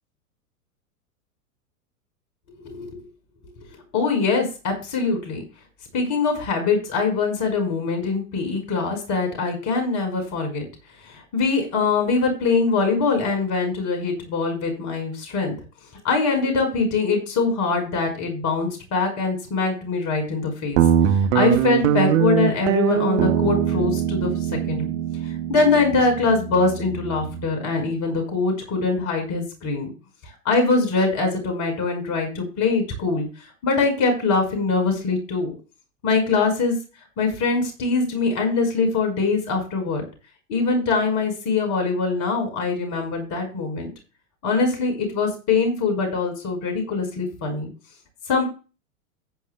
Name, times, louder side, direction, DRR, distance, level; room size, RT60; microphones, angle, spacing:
voice 1, 2.6-3.0 3.6-3.7 3.9-5.4 5.9-10.7 11.1-15.5 16.0-20.8 21.1-24.4 24.7-24.9 25.5-29.9 30.5-33.3 33.6-35.5 36.0-36.8 37.2-40.0 40.5-43.9 44.4-47.7 48.3-48.4, left 4 dB, 40° left, 4 dB, 5.5 m, -23 dB
Guitar, 20.8-27.5, right 10 dB, 50° right, 1.2 m, -22 dB
15.5 x 9.1 x 2.4 m, 0.33 s
figure-of-eight pair, 100°, 45 cm